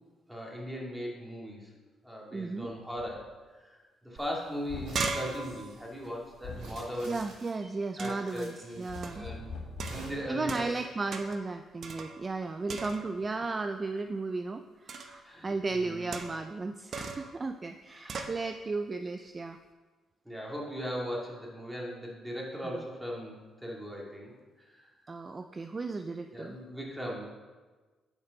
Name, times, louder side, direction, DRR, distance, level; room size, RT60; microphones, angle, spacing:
voice 1, 0.3-1.7 2.0-7.2 8.0-8.9 9.1-9.5 9.9-10.7 15.2-16.1 17.9-18.3 20.3-24.9 26.3-27.2, equal, 5° right, -3 dB, 2.2 m, -39 dB
voice 2, 2.3-2.7 7.1-9.3 10.3-19.6 25.1-26.6, right 3 dB, 30° right, 8 dB, 0.4 m, -35 dB
sound 1, 3.0-3.2 4.7-5.1 6.4-6.8 8.9-10.1, left 3 dB, 75° left, 2.1 m, -41 dB
sound 2, 4.2-4.3 4.5-7.3 8.0-8.4 9.0-9.3 9.8-10.8 11.1-11.5 11.8-12.4 12.7-13.3 14.9-15.2 16.1-16.5 16.9-17.3 18.1-18.4, right 4 dB, 55° right, 0.8 m, -38 dB
sound 3, 4.8-5.9 6.5-7.7 8.2-9.3 9.8-10.5, right 2 dB, 80° right, 2.4 m, -50 dB
8.0 x 5.2 x 5.2 m, 1.3 s
cardioid pair, 90°, 0 cm